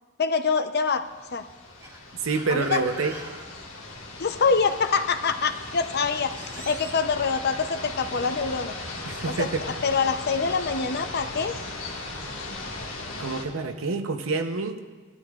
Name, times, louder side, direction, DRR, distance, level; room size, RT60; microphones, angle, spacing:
voice 1, 0.2-1.4 2.5-2.8 4.2-6.3 6.7-8.7 9.4-11.6, left 5 dB, 55° left, 9 dB, 0.6 m, -25 dB
sound 1, 1.0-13.4, left 2 dB, 85° left, 1.8 m, -37 dB
sound 2, 1.6-7.0, right 1 dB, 15° right, 1.7 m, -46 dB
voice 2, 2.2-3.1 9.1-9.6 13.2-14.9, right 4 dB, 90° right, 5 dB, 0.8 m, -27 dB
18.5 x 12.5 x 2.4 m, 1.4 s
head